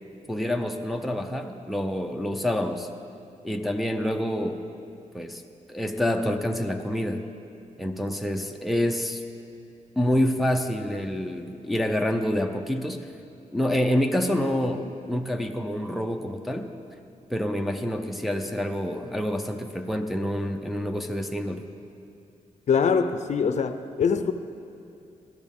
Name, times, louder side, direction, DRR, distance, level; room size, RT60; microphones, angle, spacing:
voice 1, 0.3-2.9 3.4-4.6 5.1-5.4 5.7-7.3 7.8-9.2 10.0-13.1 13.5-16.7 17.3-21.6, left 1 dB, ahead, 3 dB, 0.5 m, -27 dB
voice 2, 22.7-24.3, left 6 dB, 60° left, 9 dB, 0.5 m, -23 dB
14.0 x 13.0 x 3.6 m, 2.7 s
wide cardioid pair, 155°, 13 cm